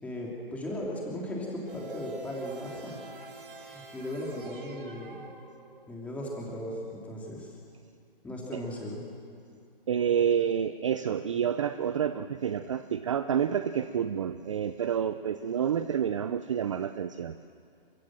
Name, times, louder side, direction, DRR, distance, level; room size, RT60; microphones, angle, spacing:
voice 1, 0.0-3.0 3.6-5.2 5.9-7.6 8.2-9.0, left 1 dB, 5° left, -2 dB, 3.1 m, -37 dB
sound 1, 1.7-6.0, right 3 dB, 65° right, 5.6 m, -47 dB
voice 2, 9.9-17.4, right 8 dB, 35° right, 12 dB, 0.6 m, -29 dB
29.5 x 15.5 x 7.5 m, 2.4 s
hypercardioid pair, 155°, 29 cm